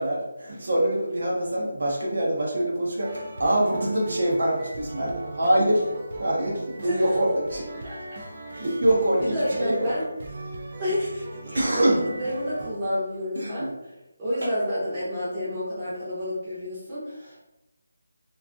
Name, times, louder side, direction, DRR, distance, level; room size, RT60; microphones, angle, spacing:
voice 1, 0.0-5.8 6.2-7.7 8.5-9.9 11.5-12.0 13.4-13.7, right 1 dB, 55° right, -3 dB, 0.7 m, -24 dB
sound 1, 3.0-12.7, right 2 dB, 35° right, 0.3 m, -39 dB
voice 2, 6.8-7.1 7.8-7.9 8.5-8.7 9.2-10.1 10.8-13.7 14.2-17.4, equal, 15° right, -11 dB, 0.7 m, -29 dB
2.5 x 2.3 x 2.5 m, 0.94 s
figure-of-eight pair, 175°, 0 cm